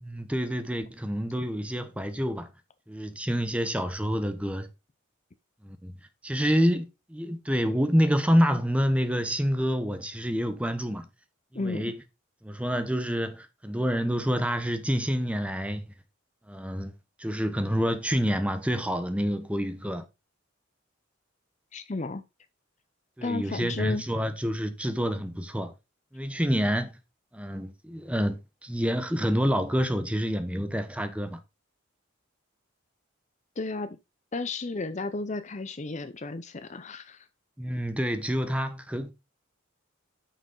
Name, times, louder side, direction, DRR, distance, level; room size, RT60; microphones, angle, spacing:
voice 1, 0.0-2.5 2.9-4.7 5.6-5.9 6.2-11.1 11.5-12.0 12.4-15.8 16.5-16.9 17.2-20.0 23.2-25.7 26.1-27.0 27.3-31.4 37.6-39.1, equal, 5° right, 0.9 m, -27 dB
voice 2, 11.5-11.9 21.7-22.2 23.2-24.0 33.6-34.0 34.3-37.3, left 3 dB, 35° left, 0.6 m, -33 dB
9.3 x 6.1 x 3.9 m
head